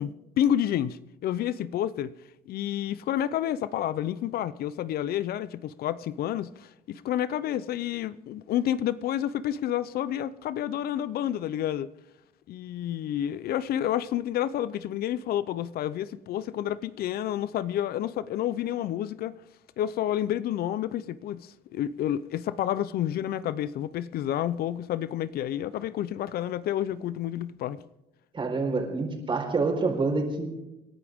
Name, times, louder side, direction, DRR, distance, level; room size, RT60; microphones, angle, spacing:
voice 1, 0.0-2.1 2.5-11.9 12.5-19.4 19.8-27.8, left 11 dB, 65° left, 0.6 m, -29 dB
voice 2, 28.3-30.5, right 3 dB, 30° right, 4.3 m, -27 dB
28.0 x 11.0 x 3.6 m
cardioid pair, 110°, 17 cm